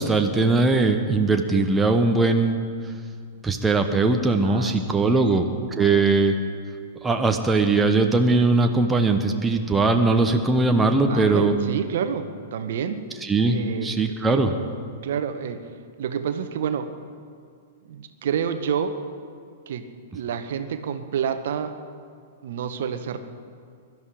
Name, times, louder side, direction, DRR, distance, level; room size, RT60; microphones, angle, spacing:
voice 1, 0.0-2.6 3.4-5.5 5.8-6.3 7.0-11.5 13.2-13.6 13.8-14.5, right 3 dB, 10° right, 4 dB, 1.1 m, -20 dB
voice 2, 4.4-5.2 5.8-6.0 11.1-13.0 13.5-14.4 15.0-15.6 16.0-16.9 17.8-19.0 19.7-19.8 20.1-21.8 22.4-23.2, right 7 dB, 55° right, 9 dB, 1.2 m, -29 dB
22.5 x 12.5 x 4.9 m, 2.1 s
figure-of-eight pair, 105°, 0 cm